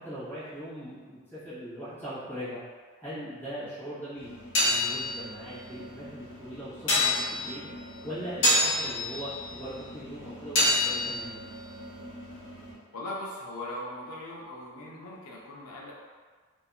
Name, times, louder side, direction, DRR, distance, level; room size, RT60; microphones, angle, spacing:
voice 1, 0.0-2.6 3.0-4.4 4.6-7.7 8.0-11.4, equal, 10° left, -13 dB, 1.3 m, -40 dB
sound 1, 4.2-12.7, left 1 dB, 55° left, 0.8 m, -30 dB
voice 2, 12.9-15.9, left 1 dB, 85° left, -4 dB, 0.5 m, -39 dB
2.7 x 2.5 x 2.3 m, 1.5 s
head